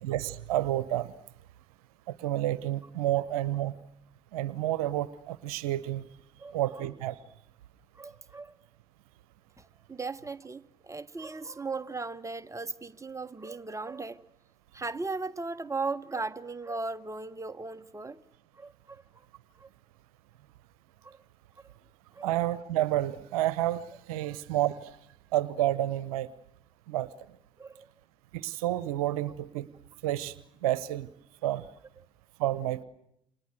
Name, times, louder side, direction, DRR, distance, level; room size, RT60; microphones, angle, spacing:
voice 1, 0.0-1.1 2.1-3.7 4.3-6.1 6.5-7.2 22.2-24.9 25.3-26.3 26.9-27.1 28.3-29.7 30.0-30.4 30.6-31.1 31.4-31.6 32.4-32.8, right 14 dB, 80° right, 0.9 m, -30 dB
voice 2, 7.9-8.5 9.6-14.2 14.7-18.2 18.5-19.0 19.6-19.7 21.0-21.2 21.6-21.7 22.1-22.3 24.2-24.4 27.6-27.9, right 3 dB, 15° right, 1.4 m, -37 dB
29.5 x 27.0 x 6.5 m
hypercardioid pair, 50°, 18 cm